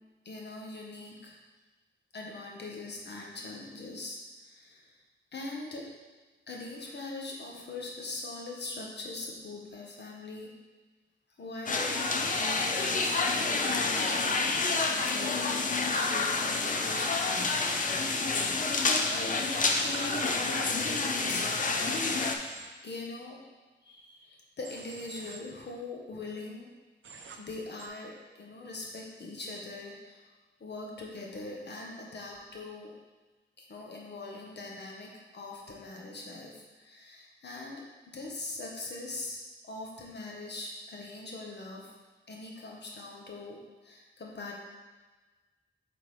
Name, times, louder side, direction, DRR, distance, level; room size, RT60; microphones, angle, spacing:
voice 1, 0.2-1.3 2.1-5.0 5.3-5.9 6.5-10.6 11.4-12.0 12.3-14.5 14.8-17.9 18.1-22.2 22.8-23.4 23.8-26.7 27.3-30.2 30.6-32.9 33.6-41.9 42.3-44.5, left 2 dB, 60° left, -2 dB, 1.1 m, -42 dB
Jagalchi Fish Market Busan Republic of Korea, 11.7-22.4, left 3 dB, 40° left, 0.5 m, -28 dB
Human voice / Train, 19.7-20.4 21.9-22.7 24.6-25.4 27.0-27.4 27.8-27.9, right 4 dB, 85° right, 0.6 m, -46 dB
8.4 x 3.8 x 3.2 m, 1.3 s
wide cardioid pair, 175°, 20 cm